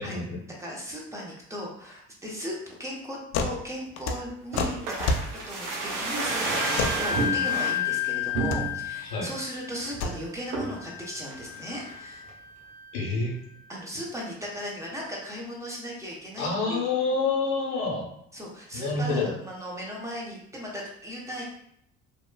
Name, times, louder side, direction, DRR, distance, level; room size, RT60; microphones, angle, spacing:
voice 1, 0.0-0.4 9.0-9.3 12.9-13.4 16.4-18.1 18.7-19.3, left 3 dB, 80° left, -2 dB, 0.9 m, -27 dB
voice 2, 0.6-2.5 2.8-12.3 13.7-16.9 18.3-21.4, equal, 10° right, -3 dB, 0.9 m, -37 dB
sound 1, 3.3-3.6 3.9-5.3 6.8-7.0 8.3-8.6 9.8-10.2, left 3 dB, 55° left, 0.5 m, -28 dB
sound 2, 4.5-7.8 8.3-9.0 9.4-9.5 9.7-10.0 10.5-10.8 11.3-12.0 12.3-12.4, right 3 dB, 75° right, 0.8 m, -30 dB
Wind instrument woodwind instrument, 6.2-13.5, left 9 dB, 35° right, 1.2 m, -33 dB
2.8 x 2.3 x 2.2 m, 0.70 s
supercardioid pair, 75°, 31 cm